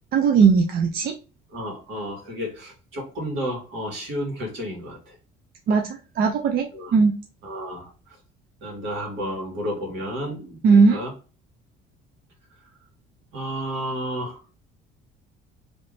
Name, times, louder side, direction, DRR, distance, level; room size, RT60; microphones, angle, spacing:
voice 1, 0.1-1.1 5.7-7.1 10.6-11.0, right 5 dB, 50° right, 3 dB, 0.5 m, -18 dB
voice 2, 1.5-5.2 6.7-7.0 7.4-7.9 8.6-11.1 13.3-14.4, equal, 70° right, 1 dB, 1.9 m, -32 dB
3.1 x 2.7 x 3.2 m, 0.33 s
cardioid pair, 145°, 20 cm